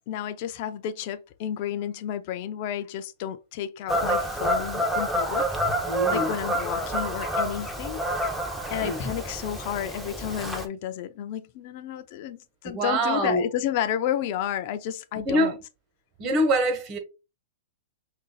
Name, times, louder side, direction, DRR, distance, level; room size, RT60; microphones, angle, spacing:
voice 1, 0.1-5.6 5.9-8.0 8.7-15.5, left 10 dB, 50° left, 0.4 m, -31 dB
Fowl / Bird vocalization bird call bird song, 3.9-10.7, equal, ahead, 0.7 m, -28 dB
voice 2, 5.8-6.4 8.8-9.0 12.6-13.5 15.2-15.6 16.2-17.0, right 1 dB, 30° right, 1.5 m, -25 dB
5.5 x 2.6 x 2.3 m
hypercardioid pair, 125°, 0 cm